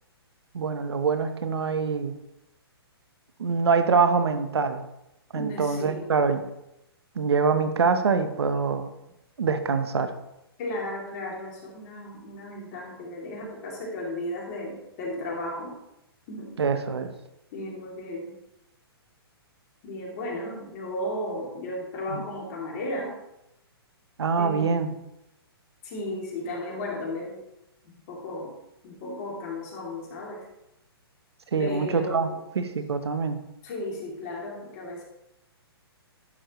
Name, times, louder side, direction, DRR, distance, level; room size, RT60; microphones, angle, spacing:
voice 1, 0.5-2.2 3.4-4.8 5.3-6.5 7.2-8.9 9.4-10.1 16.6-17.1 22.1-22.2 24.2-24.9 31.5-32.3 32.5-33.4, right 5 dB, 80° right, 9 dB, 0.9 m, -24 dB
voice 2, 5.3-6.1 10.6-15.8 16.3-16.5 17.5-18.4 19.8-23.2 24.4-24.8 25.8-27.5 27.8-28.5 28.8-30.5 31.6-32.4 33.6-35.0, left 1 dB, 40° left, -2 dB, 2.8 m, -35 dB
11.0 x 6.5 x 3.1 m, 0.87 s
hypercardioid pair, 140°, 13 cm